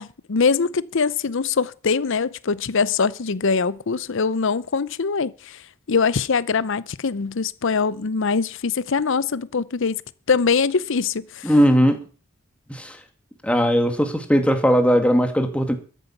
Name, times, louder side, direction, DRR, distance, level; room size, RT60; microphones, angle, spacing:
voice 1, 0.0-5.6 5.9-10.0 10.3-11.5, left 5 dB, 65° left, 0.7 m, -23 dB
voice 2, 11.4-12.0 12.7-13.0 13.4-15.8, equal, 5° left, 2.2 m, -18 dB
13.5 x 9.3 x 7.2 m
head